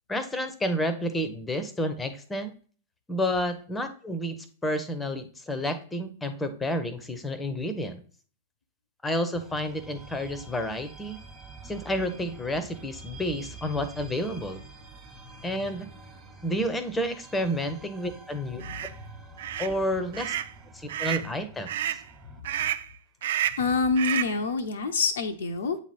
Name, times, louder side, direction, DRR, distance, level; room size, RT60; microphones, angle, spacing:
voice 1, 0.1-2.5 3.1-8.0 9.0-11.2 11.6-14.6 15.4-15.9 16.4-18.6 19.6-20.4 20.7-21.7, equal, 10° left, 11 dB, 0.8 m, -30 dB
sound 1, 9.3-22.4, right 3 dB, 10° right, 1.3 m, -47 dB
voice 2, 18.6-19.0 22.6-22.7 23.6-25.8, left 4 dB, 65° left, 7 dB, 0.6 m, -27 dB
sound 2, 18.6-18.9 19.4-19.7 20.1-20.5 20.9-21.3 21.7-22.0 22.4-22.9 23.2-23.7 24.0-24.4, right 11 dB, 55° right, 0.4 m, -30 dB
8.5 x 3.0 x 4.2 m, 0.42 s
figure-of-eight pair, 100°, 0 cm